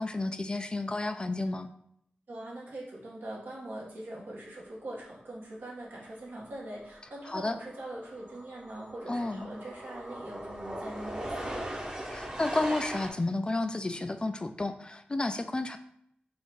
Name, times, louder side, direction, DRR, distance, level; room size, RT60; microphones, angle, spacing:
voice 1, 0.0-1.7 7.3-7.6 9.1-9.5 12.1-15.8, left 2 dB, 25° left, 9 dB, 0.3 m, -31 dB
voice 2, 2.3-11.7, right 1 dB, 85° right, -4 dB, 1.4 m, -42 dB
sound 1, 6.3-6.5 6.8-13.1, right 1 dB, 25° right, 0.8 m, -40 dB
4.3 x 2.5 x 4.7 m, 0.70 s
wide cardioid pair, 90°, 3 cm